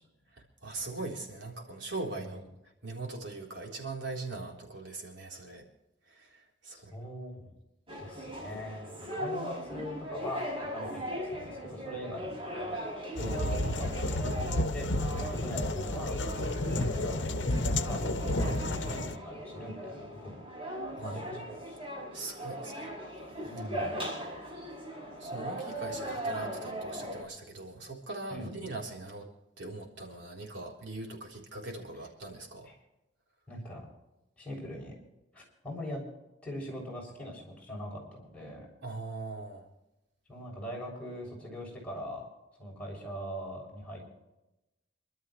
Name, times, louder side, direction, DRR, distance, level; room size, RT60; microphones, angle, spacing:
voice 1, 0.3-2.4 2.8-5.7 6.1-6.9 13.2-13.9 18.4-18.6 21.0-21.5 22.1-22.9 25.2-29.3 29.6-32.7 38.8-39.7, right 2 dB, 75° right, 0 dB, 3.8 m, -41 dB
voice 2, 6.7-7.5 8.0-12.9 13.1-16.2 16.7-18.0 18.3-20.4 21.0-21.4 21.7-21.8 23.4-24.0 28.3-28.5 32.7-32.8 33.5-33.8 34.4-34.9 35.3-36.0 36.4-38.7 40.3-42.3 42.6-44.0, equal, 10° left, -3 dB, 7.2 m, -42 dB
sound 1, 7.9-27.2, equal, 30° right, 5.3 m, -39 dB
sound 2, 13.2-19.2, left 1 dB, 80° left, 1.0 m, -31 dB
27.5 x 12.5 x 3.2 m, 0.94 s
head